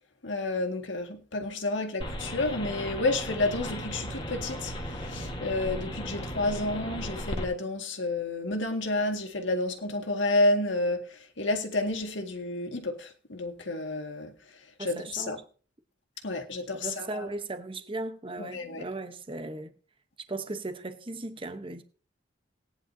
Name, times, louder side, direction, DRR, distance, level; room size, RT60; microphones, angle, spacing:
voice 1, 0.2-14.3 14.8-15.4 16.2-17.3 18.4-18.8, left 2 dB, 75° left, 2.1 m, -30 dB
sound 1, 2.0-7.4, equal, 25° left, 1.5 m, -36 dB
voice 2, 14.8-15.4 16.7-19.7 20.3-21.8, right 2 dB, 25° right, 1.0 m, -37 dB
18.5 x 10.0 x 2.8 m
head